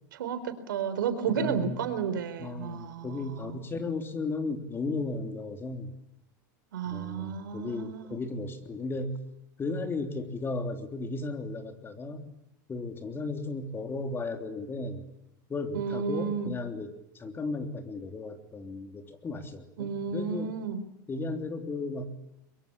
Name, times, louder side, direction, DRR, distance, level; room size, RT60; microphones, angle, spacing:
voice 1, 0.2-3.6 6.7-8.1 15.7-16.5 19.8-20.8, right 6 dB, 85° right, 11 dB, 4.1 m, -32 dB
voice 2, 1.3-1.9 2.4-5.9 6.8-9.2 9.6-12.3 12.7-15.1 15.5-20.5 21.1-22.1, left 3 dB, 20° left, 6 dB, 3.3 m, -35 dB
23.5 x 22.5 x 8.9 m, 0.81 s
supercardioid pair, 115°, 11 cm